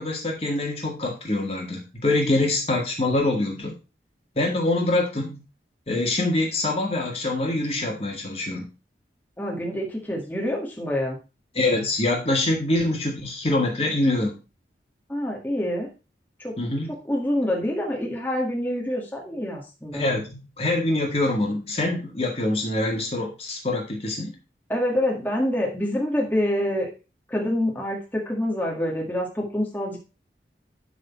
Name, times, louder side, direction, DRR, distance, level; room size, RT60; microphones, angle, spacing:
voice 1, 0.0-3.7 4.4-5.4 5.9-8.6 11.5-14.4 16.6-16.9 19.9-24.3, left 2 dB, 35° left, 0 dB, 2.0 m, -25 dB
voice 2, 9.4-11.2 15.1-15.9 16.4-16.5 17.1-20.1 24.7-26.9 27.3-30.0, left 1 dB, 10° left, -2 dB, 1.9 m, -26 dB
11.5 x 4.1 x 4.4 m, 0.30 s
head